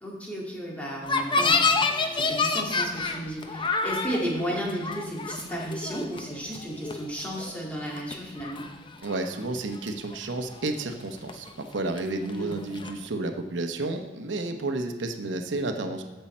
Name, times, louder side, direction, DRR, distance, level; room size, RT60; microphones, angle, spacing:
voice 1, 0.0-8.7 12.3-12.6, equal, 10° left, -3 dB, 2.0 m, -33 dB
sound 1, 1.0-7.6 7.9-8.7 9.0-9.6 9.9-11.0 11.3-13.1, left 4 dB, 25° left, 0.6 m, -28 dB
voice 2, 9.0-16.0, right 2 dB, 80° right, 5 dB, 0.9 m, -31 dB
14.5 x 5.5 x 4.3 m, 1.3 s
head